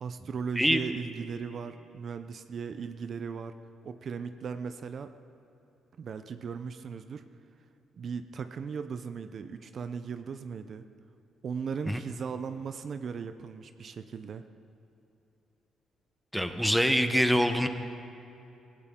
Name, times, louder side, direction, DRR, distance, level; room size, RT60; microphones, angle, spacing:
voice 1, 0.0-3.5 3.8-5.1 6.0-7.2 8.0-10.8 11.4-14.4, right 6 dB, 55° right, 9 dB, 0.6 m, -37 dB
voice 2, 16.3-17.7, equal, ahead, 7 dB, 1.0 m, -24 dB
17.0 x 16.5 x 3.8 m, 2.9 s
cardioid pair, 90°, 0 cm